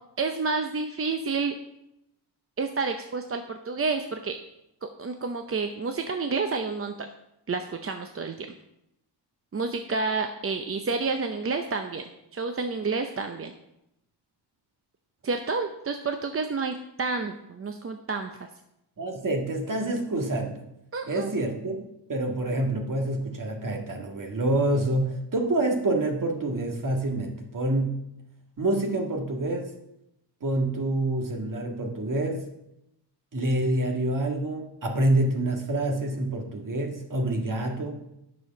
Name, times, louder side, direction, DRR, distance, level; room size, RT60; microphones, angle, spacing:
voice 1, 0.2-1.5 2.6-4.4 4.8-7.1 7.5-8.5 9.5-12.0 12.3-13.5 15.2-18.5 20.9-21.3, right 4 dB, 30° right, 6 dB, 0.6 m, -29 dB
voice 2, 19.0-20.7 21.1-21.8 22.1-28.0 28.6-29.7 30.4-32.4 33.3-38.0, right 1 dB, 45° right, 2 dB, 1.8 m, -27 dB
10.0 x 6.4 x 5.8 m, 0.84 s
wide cardioid pair, 135°, 43 cm